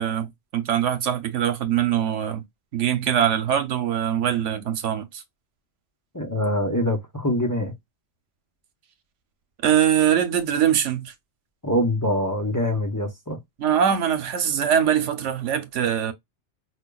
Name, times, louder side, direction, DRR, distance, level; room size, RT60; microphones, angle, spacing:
voice 1, 0.0-2.4 2.7-5.2 9.6-11.1 13.6-16.1, right 9 dB, 85° right, 1.1 m, -22 dB
voice 2, 6.1-7.7 11.6-13.4, left 1 dB, 20° left, 0.7 m, -24 dB
4.9 x 2.2 x 2.2 m
omnidirectional pair, 1.2 m